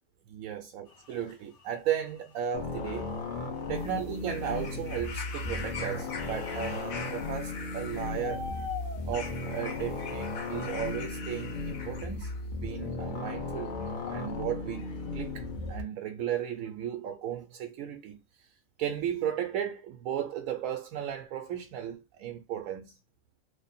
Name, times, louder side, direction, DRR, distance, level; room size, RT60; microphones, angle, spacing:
voice 1, 0.3-3.1 3.7-8.5 9.1-13.8 14.1-18.5 18.8-23.0, right 9 dB, 90° right, 1.0 m, -35 dB
sound 1, 0.9-10.2 10.7-12.9 13.3-15.8, left 4 dB, 60° left, 1.2 m, -48 dB
sound 2, 2.5-15.8, left 3 dB, 45° left, 0.9 m, -36 dB
sound 3, 3.7-12.4 13.3-13.4, left 5 dB, 90° left, 1.2 m, -43 dB
3.3 x 2.1 x 4.1 m
omnidirectional pair, 1.4 m